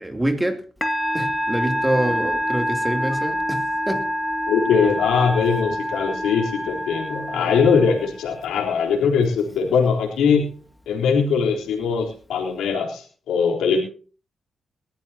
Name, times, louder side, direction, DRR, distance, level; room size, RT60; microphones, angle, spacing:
voice 1, 0.0-0.6 1.1-4.1, right 1 dB, 15° right, 3.0 m, -25 dB
Musical instrument, 0.8-8.4, equal, 15° left, 2.3 m, -26 dB
voice 2, 4.5-10.5 10.9-13.8, left 6 dB, 85° left, 3.8 m, -21 dB
20.5 x 13.5 x 2.9 m
supercardioid pair, 55°, 0 cm